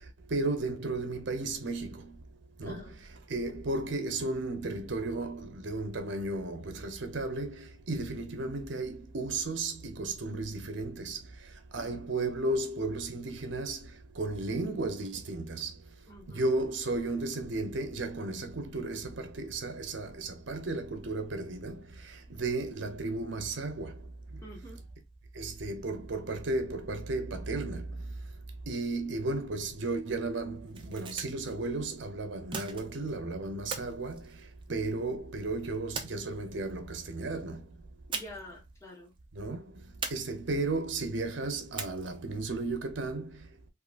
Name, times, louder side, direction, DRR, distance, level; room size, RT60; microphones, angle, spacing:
voice 1, 0.3-2.1 2.6-2.8 3.3-11.2 11.7-13.8 14.2-15.7 16.3-21.8 22.3-23.9 25.4-27.8 28.7-34.2 34.7-37.6 39.3-39.6 40.1-43.3, right 2 dB, 85° right, 0.7 m, -34 dB
voice 2, 2.7-3.0 11.8-12.0 16.1-16.4 24.4-24.8 38.1-39.1, left 1 dB, 15° left, 1.1 m, -48 dB
sound 1, 30.7-31.5 32.5-33.2 33.7-35.0 36.0-36.7 38.1-38.6 38.8-39.0 40.0-40.8 41.8-42.3, right 5 dB, 25° right, 0.5 m, -40 dB
3.7 x 2.4 x 2.4 m
head